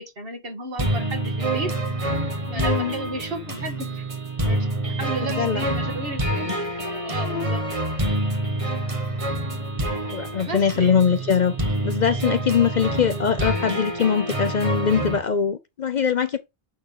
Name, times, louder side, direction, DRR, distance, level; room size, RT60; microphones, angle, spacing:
voice 1, 0.0-1.7 2.5-4.1 4.4-6.6 7.0-7.7 10.4-11.0 12.9-13.5, right 1 dB, 65° right, 1.8 m, -34 dB
sound 1, 0.8-15.2, right 1 dB, 30° right, 1.4 m, -27 dB
voice 2, 2.5-3.0 5.3-5.7 7.2-7.5 10.1-11.5 11.8-16.4, left 7 dB, 55° left, 0.6 m, -22 dB
9.6 x 3.5 x 3.8 m
omnidirectional pair, 1.1 m